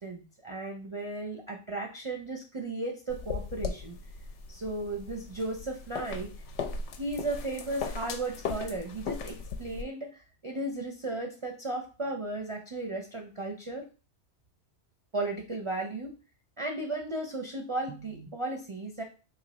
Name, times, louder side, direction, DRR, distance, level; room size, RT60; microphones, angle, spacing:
voice 1, 0.0-4.0 4.5-6.3 7.0-13.8 15.1-16.1 16.6-19.0, right 2 dB, 40° right, 2 dB, 0.4 m, -35 dB
sound 1, 3.1-9.8, left 5 dB, 85° left, 0.9 m, -38 dB
3.2 x 2.7 x 4.0 m, 0.34 s
omnidirectional pair, 1.2 m